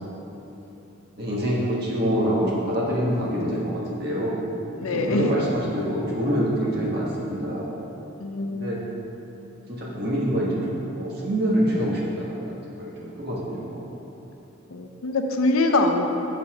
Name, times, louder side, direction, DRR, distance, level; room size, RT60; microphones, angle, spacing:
voice 1, 1.2-4.4 4.8-7.7 8.5-8.8 9.7-13.8, equal, 50° right, -5 dB, 1.4 m, -26 dB
voice 2, 4.8-5.3 8.2-8.8 14.7-16.1, left 2 dB, 85° left, 4 dB, 0.6 m, -23 dB
7.0 x 4.2 x 5.6 m, 3.0 s
head